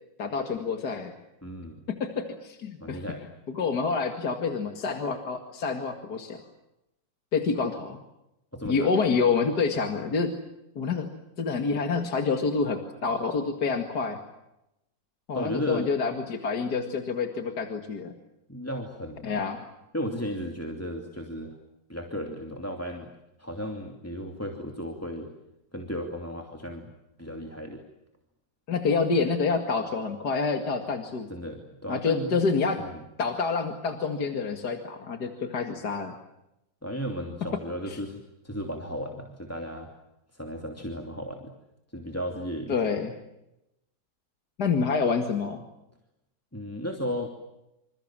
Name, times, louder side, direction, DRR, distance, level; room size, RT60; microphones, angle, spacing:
voice 1, 0.2-1.1 1.9-3.0 3.5-6.4 7.3-8.0 8.6-10.3 10.8-11.1 11.4-14.2 15.3-18.1 19.2-19.7 28.7-31.3 31.9-32.8 33.2-36.2 37.9-38.0 42.7-43.1 44.6-45.6, left 4 dB, 60° left, 6 dB, 2.6 m, -27 dB
voice 2, 1.4-1.9 2.8-3.2 8.5-8.9 15.3-15.9 18.5-19.3 19.9-21.6 21.9-23.1 23.4-25.3 25.7-26.9 27.2-27.8 31.3-32.4 32.8-33.1 36.8-39.9 40.3-41.5 41.9-43.0 46.5-47.3, equal, 10° left, 4 dB, 2.7 m, -35 dB
27.5 x 27.5 x 7.5 m, 0.89 s
omnidirectional pair, 1.9 m